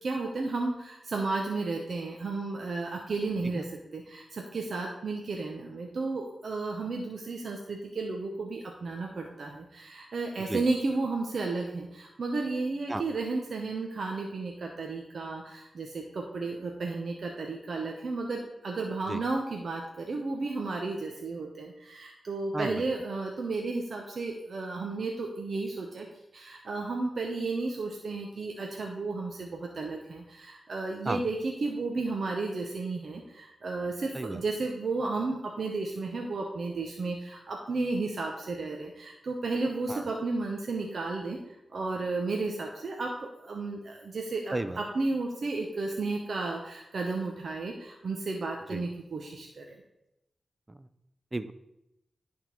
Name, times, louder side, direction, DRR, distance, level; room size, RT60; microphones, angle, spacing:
voice 1, 0.0-26.1 26.3-49.8, right 3 dB, 70° right, 1 dB, 0.8 m, -33 dB
voice 2, 22.5-22.8 31.1-31.2 34.1-34.4 39.9-40.0 44.5-44.8 48.7-48.8 50.7-50.9 51.3-51.5, right 2 dB, 25° right, 12 dB, 0.5 m, -33 dB
10.5 x 3.7 x 4.5 m, 0.86 s
cardioid pair, 55°, 0 cm